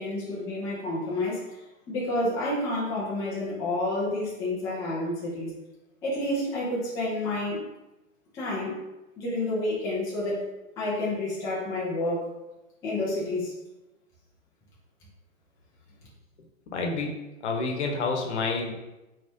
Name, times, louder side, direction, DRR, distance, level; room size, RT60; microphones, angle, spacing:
voice 1, 0.0-1.4 1.9-5.5 6.0-7.6 8.3-8.7 9.2-10.4 10.8-12.3 12.8-13.5, left 1 dB, 10° left, -7 dB, 0.5 m, -29 dB
voice 2, 16.7-18.7, left 3 dB, 55° left, 1 dB, 1.0 m, -29 dB
5.1 x 3.1 x 2.7 m, 1.0 s
hypercardioid pair, 130°, 41 cm